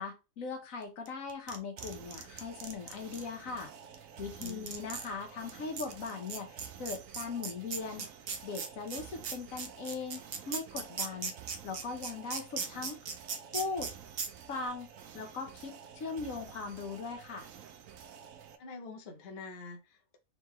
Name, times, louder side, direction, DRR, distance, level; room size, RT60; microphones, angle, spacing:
voice 1, 0.0-3.7 4.2-8.1 8.4-11.3 11.6-13.0 13.5-13.9 14.5-14.9 15.1-17.5, left 4 dB, 85° left, 1.5 m, -39 dB
sound 1, 1.1-3.2 3.9-4.0 4.4-5.1 5.5-5.6 5.8-13.9 14.2-14.3, right 6 dB, 55° right, 0.8 m, -37 dB
sound 2, 1.8-18.6, right 8 dB, 90° right, 1.1 m, -51 dB
voice 2, 4.4-4.7 18.6-20.2, left 3 dB, 55° left, 1.0 m, -46 dB
3.8 x 3.6 x 3.1 m
omnidirectional pair, 1.4 m